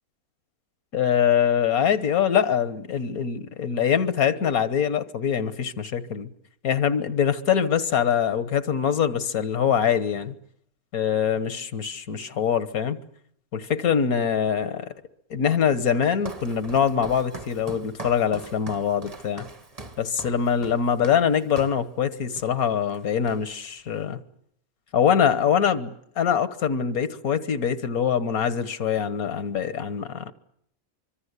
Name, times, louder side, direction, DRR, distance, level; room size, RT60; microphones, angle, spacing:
voice 1, 0.9-6.3 6.6-10.3 10.9-13.0 13.5-14.9 15.3-19.4 20.0-24.2 24.9-30.3, left 8 dB, 75° left, 1.7 m, -23 dB
Walk footsteps, 15.9-21.9 22.4-22.6 22.9-23.7, right 2 dB, 25° right, 1.2 m, -41 dB
25.0 x 23.0 x 8.2 m
omnidirectional pair, 1.5 m